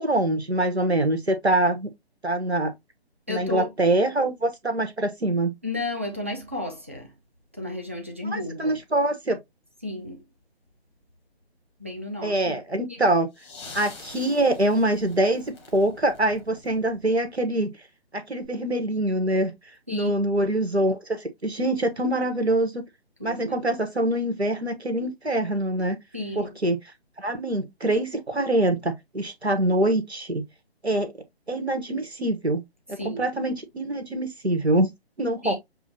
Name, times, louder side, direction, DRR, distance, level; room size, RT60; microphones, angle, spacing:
voice 1, 0.0-1.9 2.2-2.7 3.3-5.5 8.3-9.4 12.2-13.3 13.7-17.7 18.1-19.5 19.9-22.8 23.2-26.0 26.4-26.8 27.2-30.4 30.8-31.1 31.5-32.6 32.9-34.9 35.2-35.5, right 1 dB, 85° right, 1.4 m, -24 dB
voice 2, 3.3-3.7 5.6-7.1 7.5-8.8 9.8-10.2 11.8-12.6 19.9-20.2 23.2-23.6 26.1-26.5 33.0-33.3 35.4-35.5, left 2 dB, 15° right, 0.4 m, -33 dB
sound 1, 13.3-17.3 18.4-18.5, left 3 dB, 5° left, 0.8 m, -46 dB
7.2 x 2.4 x 2.8 m
figure-of-eight pair, 140°, 31 cm